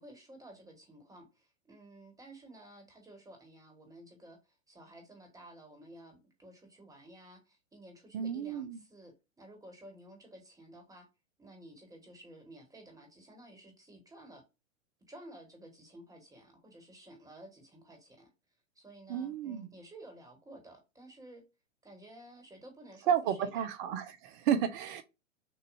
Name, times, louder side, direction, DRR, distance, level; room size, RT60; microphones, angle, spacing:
voice 1, 0.0-11.1 11.4-14.4 15.1-18.3 18.7-21.4 21.8-23.7, right 1 dB, 10° right, 1.6 m, -53 dB
voice 2, 8.1-8.8 19.1-19.7 23.1-25.0, right 9 dB, 40° right, 0.9 m, -32 dB
6.6 x 2.7 x 2.6 m
hypercardioid pair, 110°, 40 cm